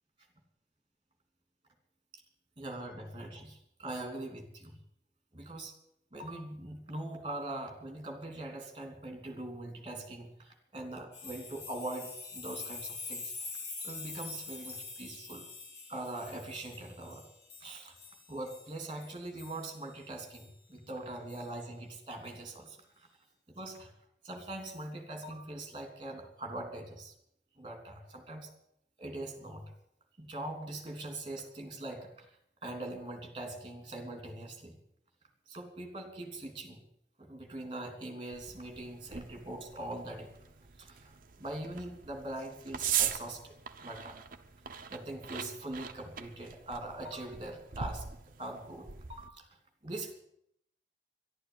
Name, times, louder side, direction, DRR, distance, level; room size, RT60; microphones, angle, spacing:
voice 1, 2.6-4.8 5.3-5.7 6.1-13.5 13.8-15.5 15.9-17.3 17.6-17.9 18.3-22.8 23.5-23.9 24.2-27.1 27.6-28.5 29.0-29.7 30.2-32.3 32.6-34.8 35.5-36.8 37.2-40.3 40.8-43.5 43.8-44.2 44.9-48.1 48.4-49.5 49.8-50.1, right 1 dB, 25° right, 4 dB, 3.0 m, -42 dB
sound 1, 11.1-19.8 20.3-20.5 21.3-21.4, left 4 dB, 60° left, 4.0 m, -45 dB
sound 2, 38.3-49.3, right 9 dB, 45° right, 0.9 m, -40 dB
12.0 x 11.5 x 9.8 m, 0.74 s
head